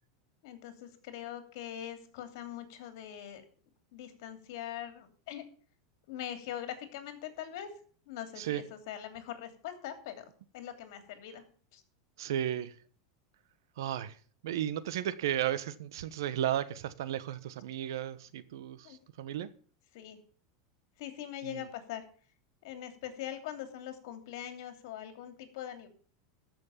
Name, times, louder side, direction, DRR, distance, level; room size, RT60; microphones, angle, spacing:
voice 1, 0.4-3.4 3.9-5.4 6.1-7.7 8.1-10.2 10.5-11.4 11.7-11.8 18.8-19.0 19.9-20.2 21.0-22.1 22.6-25.9, left 11 dB, 65° left, 8 dB, 2.9 m, -42 dB
voice 2, 12.2-12.7 13.8-14.2 14.4-19.5 21.4-21.7, right 11 dB, 80° right, 14 dB, 1.2 m, -34 dB
14.0 x 6.4 x 7.3 m, 0.43 s
supercardioid pair, 140°, 2 cm